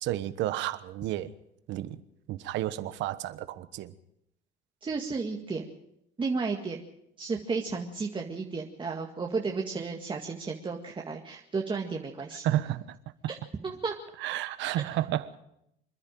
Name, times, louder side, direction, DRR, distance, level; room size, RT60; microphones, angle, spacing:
voice 1, 0.0-1.3 1.7-2.0 2.3-3.9 12.4-12.9 14.2-15.4, right 13 dB, 75° right, 14 dB, 1.3 m, -31 dB
voice 2, 4.8-5.7 6.2-6.8 7.2-12.5 13.3-13.4 13.6-13.9, right 4 dB, 25° right, 1 dB, 2.0 m, -33 dB
26.5 x 10.5 x 9.1 m, 0.78 s
cardioid pair, 105°, 19 cm